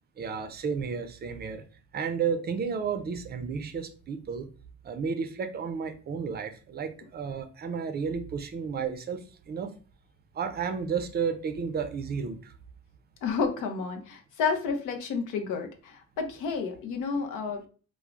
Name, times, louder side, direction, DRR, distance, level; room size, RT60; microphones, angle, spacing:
voice 1, 0.2-1.6 1.9-4.5 4.8-9.7 10.3-12.5, right 6 dB, 35° right, 9 dB, 0.4 m, -32 dB
voice 2, 13.2-17.7, left 5 dB, 85° left, 4 dB, 0.6 m, -31 dB
3.1 x 2.0 x 2.4 m, 0.38 s
cardioid pair, 90°, 30 cm